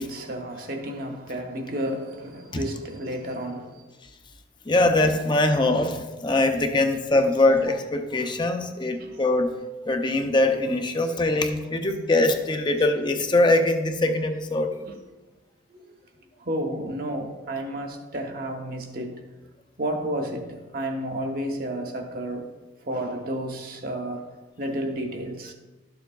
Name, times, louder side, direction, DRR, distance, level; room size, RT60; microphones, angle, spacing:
voice 1, 0.0-3.9 8.9-9.2 11.0-11.2 14.9-15.0 15.7-16.0 16.4-19.2 19.8-22.5 22.8-24.3 24.6-25.5, right 1 dB, 50° right, 1.1 m, -32 dB
voice 2, 4.7-9.5 9.9-14.8, left 2 dB, 25° left, 0.6 m, -22 dB
12.5 x 7.0 x 2.3 m
head